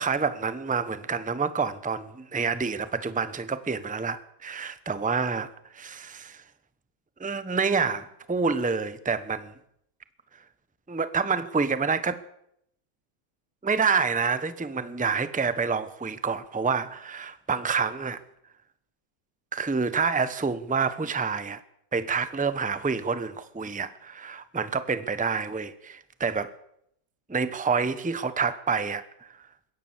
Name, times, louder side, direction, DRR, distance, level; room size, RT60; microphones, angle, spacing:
voice 1, 0.0-6.4 7.2-9.5 10.9-12.2 13.6-18.2 19.5-21.6 21.9-26.5 27.3-29.0, right 5 dB, 5° right, 0.7 m, -28 dB
21.5 x 17.5 x 7.3 m
omnidirectional pair, 2.0 m